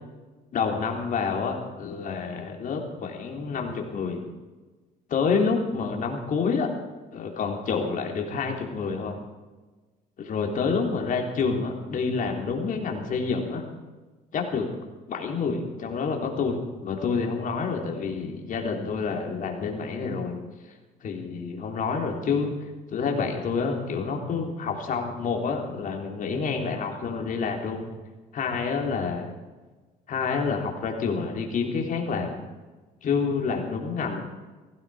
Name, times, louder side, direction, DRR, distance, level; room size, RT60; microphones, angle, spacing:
voice 1, 0.5-4.2 5.1-6.7 7.1-9.2 10.2-13.6 14.3-14.7 15.1-20.4 21.0-22.5 22.9-27.8 28.3-29.3 30.1-32.4 33.0-34.3, left 5 dB, 55° left, 1 dB, 3.7 m, -28 dB
18.0 x 15.0 x 5.0 m, 1.2 s
cardioid pair, 110°, 17 cm